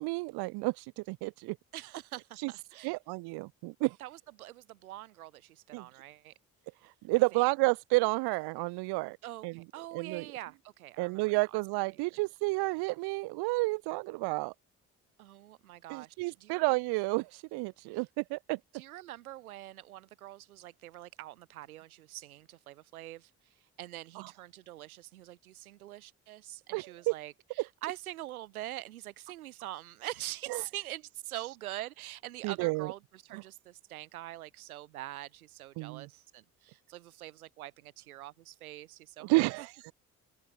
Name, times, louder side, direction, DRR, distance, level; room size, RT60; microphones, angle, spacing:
voice 1, 0.0-1.6 2.4-2.5 2.8-4.0 5.7-5.8 6.8-9.2 9.4-9.5 9.9-10.3 11.0-14.5 15.9-18.6 24.2-24.3 26.7-26.8 30.5-30.6 32.4-32.9 33.3-33.4 35.8-36.1 39.2-39.9, right 25 dB, 65° right, 0.6 m, -31 dB
voice 2, 1.7-2.9 4.0-6.3 7.3-7.5 9.2-11.6 11.9-12.0 15.2-16.7 17.9-18.0 18.7-39.7, right 15 dB, 85° right, 4.3 m, -44 dB
open air
hypercardioid pair, 45°, 42 cm